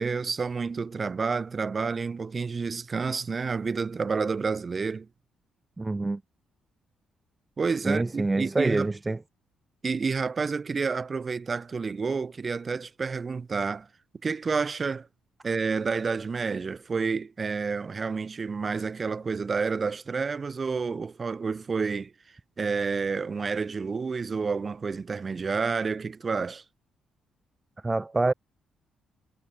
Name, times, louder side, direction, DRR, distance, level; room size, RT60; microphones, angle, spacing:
voice 1, 0.0-5.1 7.6-8.9 9.8-13.9 14.2-15.1 15.4-22.1 22.6-26.6, right 5 dB, 35° right, 1.8 m, -29 dB
voice 2, 5.8-6.2 7.8-9.2 27.8-28.3, right 2 dB, 20° right, 0.4 m, -26 dB
cardioid pair, 90°, 0 cm